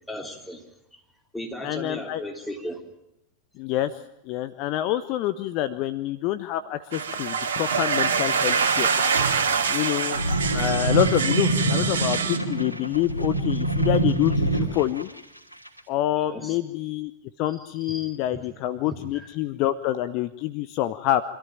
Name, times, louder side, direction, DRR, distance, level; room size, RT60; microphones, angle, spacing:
voice 1, 0.1-0.6 0.9-1.0 1.3-2.8 11.6-12.0 16.2-16.6 17.8-18.4 18.9-19.3, equal, 5° left, 2 dB, 3.4 m, -36 dB
voice 2, 1.6-2.2 3.6-3.9 4.3-9.3 9.6-10.2 10.5-15.1 15.9-17.1 17.4-21.2, left 14 dB, 40° left, 13 dB, 0.8 m, -27 dB
sound 1, 6.9-12.4, right 5 dB, 65° right, 2.3 m, -25 dB
sound 2, 10.1-15.0 15.7-15.8, right 3 dB, 90° right, 2.8 m, -25 dB
25.5 x 14.0 x 8.9 m, 0.88 s
figure-of-eight pair, 90°, 0 cm